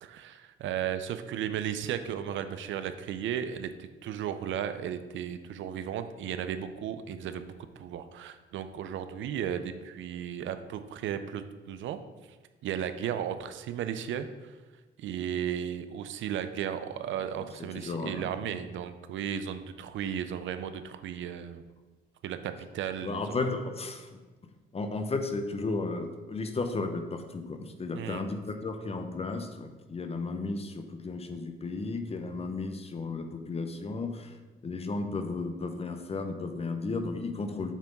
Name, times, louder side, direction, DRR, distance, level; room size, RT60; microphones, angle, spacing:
voice 1, 0.0-12.0 12.6-14.6 15.0-21.6 22.2-23.5 27.9-28.3, right 9 dB, 75° right, 10 dB, 0.5 m, -35 dB
voice 2, 17.7-18.4 23.0-24.2 24.7-34.4 34.6-37.7, left 3 dB, 30° left, 7 dB, 0.8 m, -34 dB
7.3 x 3.5 x 5.2 m, 1.2 s
cardioid pair, 90°, 20 cm